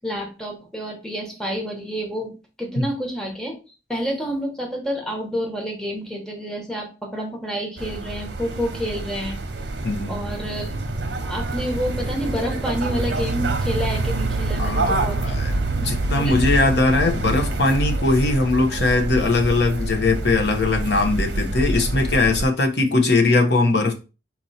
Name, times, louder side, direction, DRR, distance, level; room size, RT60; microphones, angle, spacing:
voice 1, 0.0-3.6 3.9-9.4 10.1-10.8 11.2-15.4 16.2-16.4, equal, 5° left, 1.1 m, -29 dB
sound 1, 7.8-22.4, right 2 dB, 80° right, 0.8 m, -26 dB
voice 2, 9.8-10.1 14.6-23.9, left 3 dB, 65° left, 0.9 m, -20 dB
4.3 x 2.8 x 4.2 m
head